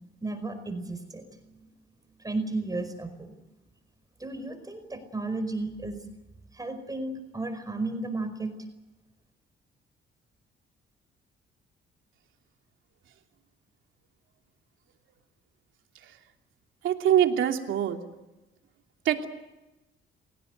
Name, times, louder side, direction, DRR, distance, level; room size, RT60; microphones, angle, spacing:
voice 1, 0.2-1.4 2.2-3.3 4.2-6.0 6.5-8.5, right 2 dB, 20° right, 7 dB, 5.0 m, -33 dB
voice 2, 16.8-18.0 19.0-19.3, right 10 dB, 80° right, 4 dB, 2.9 m, -23 dB
29.5 x 17.5 x 8.1 m, 1.0 s
cardioid pair, 90°, 20 cm